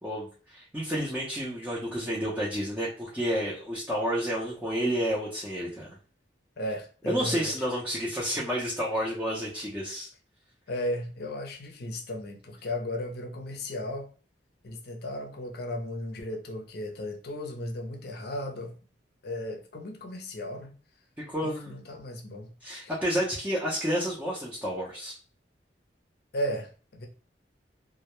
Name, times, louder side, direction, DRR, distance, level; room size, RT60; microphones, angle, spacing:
voice 1, 0.0-6.0 7.1-10.1 21.2-21.8 22.6-25.1, equal, 10° right, -6 dB, 0.5 m, -30 dB
voice 2, 6.6-7.6 8.3-8.4 10.7-14.1 14.6-18.7 19.2-20.8 21.4-22.5 22.8-23.0 26.3-27.1, left 1 dB, 60° left, 2 dB, 0.5 m, -35 dB
2.2 x 2.1 x 2.9 m, 0.39 s
head